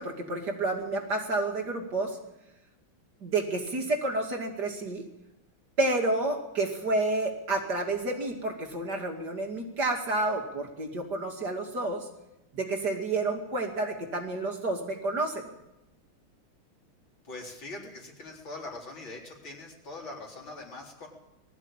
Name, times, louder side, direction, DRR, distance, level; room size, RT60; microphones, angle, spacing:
voice 1, 0.0-2.2 3.2-5.0 5.8-12.1 12.5-15.5, right 2 dB, 50° right, 2 dB, 2.9 m, -30 dB
voice 2, 17.2-21.1, left 2 dB, 60° left, -1 dB, 4.6 m, -42 dB
20.5 x 14.0 x 8.9 m, 0.92 s
omnidirectional pair, 2.4 m